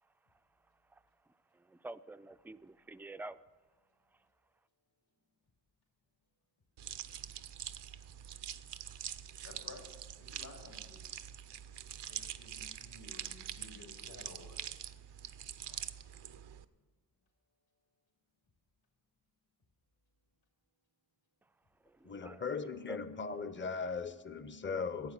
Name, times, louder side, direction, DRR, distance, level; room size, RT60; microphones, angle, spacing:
voice 1, 0.0-0.4 0.8-3.4 4.1-4.3 21.4-21.5 21.8-23.0, right 2 dB, 5° right, 0.3 m, -50 dB
sound 1, 6.8-16.6, right 10 dB, 80° right, 0.6 m, -45 dB
voice 2, 9.4-9.9 10.1-11.0 12.1-14.6 15.7-15.9, left 3 dB, 70° left, 2.9 m, -54 dB
voice 3, 22.0-25.1, left 5 dB, 30° left, 0.7 m, -38 dB
12.0 x 8.4 x 7.5 m
cardioid pair, 65°, 41 cm